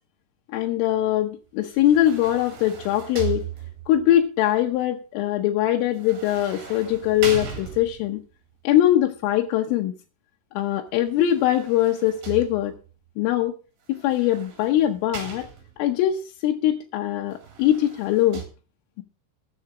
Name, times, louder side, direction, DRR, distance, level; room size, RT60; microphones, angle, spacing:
voice 1, 0.5-3.5 3.9-8.2 8.7-9.9 10.6-12.8 13.2-13.5 13.9-15.5 15.8-18.4, left 12 dB, 80° left, 3 dB, 3.5 m, -22 dB
sound 1, 1.6-4.1 5.9-8.2 11.1-12.9 13.9-15.9 17.3-18.5, right 8 dB, 60° right, 5.3 m, -37 dB
13.5 x 7.7 x 6.0 m, 0.35 s
omnidirectional pair, 5.8 m